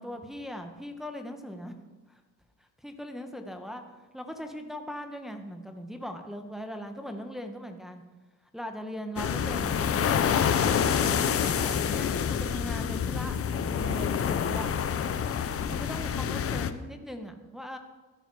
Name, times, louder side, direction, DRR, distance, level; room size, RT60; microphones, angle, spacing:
voice 1, 0.0-1.7 2.1-2.2 2.8-3.8 4.1-8.0 8.5-10.5 11.0-14.7 15.7-17.8, equal, ahead, 4 dB, 1.4 m, -39 dB
sound 1, 9.2-16.7, left 8 dB, 50° left, 0.8 m, -27 dB
14.0 x 10.0 x 4.9 m, 1.2 s
cardioid pair, 90°, 30 cm